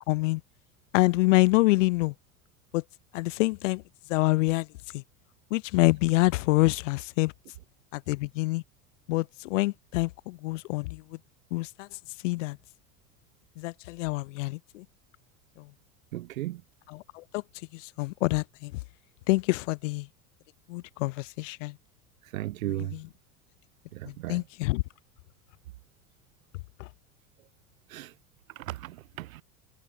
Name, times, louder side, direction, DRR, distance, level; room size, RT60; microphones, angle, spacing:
voice 1, 0.1-0.4 0.9-2.1 2.7-2.8 3.1-3.8 4.1-4.7 4.9-5.0 5.5-7.3 7.9-8.6 9.1-11.2 11.5-11.9 12.2-12.6 13.6-14.8 15.6-15.7 16.9-17.4 17.7-18.7 19.3-20.1 20.7-21.7 22.7-23.1 24.1-24.8 26.8-26.9, left 21 dB, 55° left, 0.6 m, -26 dB
voice 2, 16.1-16.6 22.3-23.0 23.9-24.4 27.9-28.1 28.6-29.4, right 16 dB, 65° right, 2.2 m, -35 dB
figure-of-eight pair, 75°, 44 cm